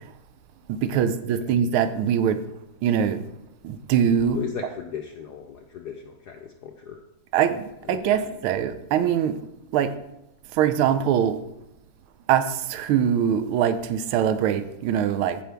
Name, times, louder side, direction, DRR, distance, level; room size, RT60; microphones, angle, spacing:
voice 1, 0.7-2.4 2.8-3.2 3.6-4.4 7.3-9.4 9.7-9.9 10.5-11.4 12.3-15.4, right 9 dB, 80° right, 10 dB, 1.5 m, -23 dB
voice 2, 4.3-7.0 7.9-8.3, left 7 dB, 70° left, 3 dB, 0.9 m, -36 dB
15.0 x 5.1 x 3.4 m, 0.84 s
omnidirectional pair, 2.4 m